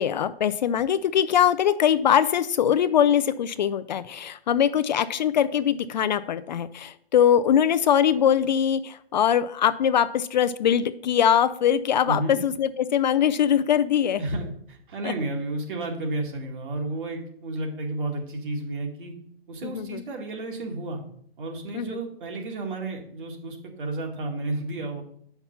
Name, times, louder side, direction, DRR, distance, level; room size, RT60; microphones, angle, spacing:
voice 1, 0.0-14.2 15.0-15.1 19.6-20.0 21.7-22.0, left 9 dB, 45° left, 13 dB, 0.5 m, -22 dB
voice 2, 12.1-12.4 14.2-19.2 19.5-21.0 21.4-25.0, right 2 dB, 55° right, 2 dB, 2.3 m, -32 dB
7.8 x 5.9 x 5.5 m, 0.64 s
hypercardioid pair, 135°, 31 cm